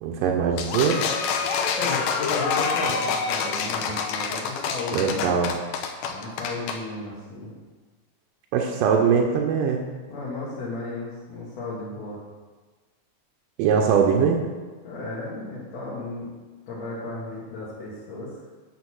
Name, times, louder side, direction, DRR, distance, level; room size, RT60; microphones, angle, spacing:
voice 1, 0.0-1.0 4.9-5.5 8.5-9.8 13.6-14.4, right 6 dB, 80° right, 1 dB, 2.3 m, -21 dB
sound 1, 0.6-6.8, left 5 dB, 85° left, 2.4 m, -27 dB
voice 2, 1.7-5.4 6.0-7.5 10.1-12.2 14.8-16.3 16.7-18.3, left 2 dB, 55° left, -9 dB, 2.4 m, -34 dB
9.7 x 3.9 x 6.2 m, 1.4 s
omnidirectional pair, 3.9 m